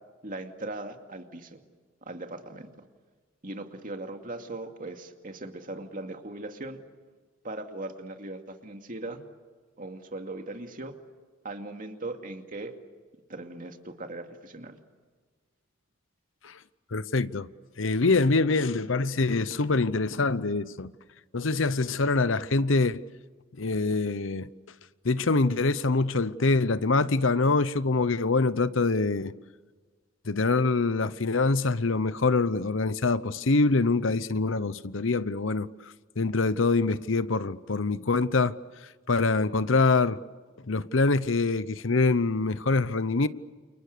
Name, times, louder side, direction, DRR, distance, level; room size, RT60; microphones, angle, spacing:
voice 1, 0.2-1.6 2.1-2.7 3.4-6.8 7.4-9.2 9.8-10.9 11.4-12.7 13.3-14.8, right 2 dB, 45° right, 2.4 m, -39 dB
voice 2, 16.9-17.5 17.8-20.9 21.3-23.0 23.6-24.5 25.0-29.3 30.2-38.6 39.1-40.2 40.6-43.3, left 3 dB, 70° left, 0.9 m, -25 dB
30.0 x 29.0 x 6.8 m
head